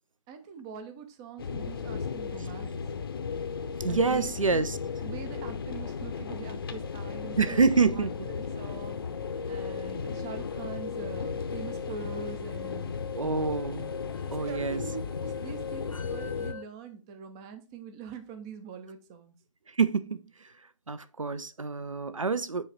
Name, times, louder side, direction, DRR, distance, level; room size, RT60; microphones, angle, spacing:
voice 1, 0.3-2.8 3.9-4.7 5.0-7.6 7.9-13.0 14.3-19.4, right 6 dB, 10° right, 0.3 m, -43 dB
sound 1, 1.4-16.5, left 5 dB, 45° left, 0.7 m, -35 dB
voice 2, 3.8-4.8 7.4-8.3 13.1-13.9 14.3-14.8 19.7-20.5 20.9-22.6, right 4 dB, 80° right, 0.6 m, -27 dB
sound 2, 6.8-16.7, left 6 dB, 85° left, 0.4 m, -43 dB
7.5 x 3.2 x 4.5 m
figure-of-eight pair, 140°, 17 cm